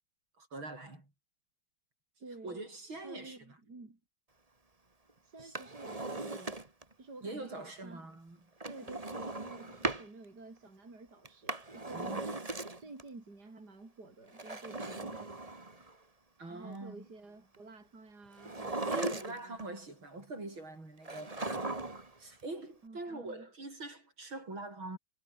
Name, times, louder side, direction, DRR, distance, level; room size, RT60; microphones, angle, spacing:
voice 1, 0.4-1.1 2.4-3.4 5.4-5.5 7.2-8.4 11.9-12.5 16.4-17.1 18.9-21.9 22.2-25.0, right 2 dB, 70° right, 8.3 m, -44 dB
voice 2, 2.2-2.6 3.0-4.0 5.2-6.6 7.0-8.0 8.6-12.4 12.8-15.8 16.5-19.7 22.8-23.5, right 3 dB, 50° right, 5.3 m, -51 dB
Drawer open or close, 5.4-6.9 8.6-10.1 11.2-13.0 14.3-15.9 18.4-19.6 21.0-22.2 22.4-22.5, right 2 dB, 15° right, 2.1 m, -38 dB
omnidirectional pair, 2.3 m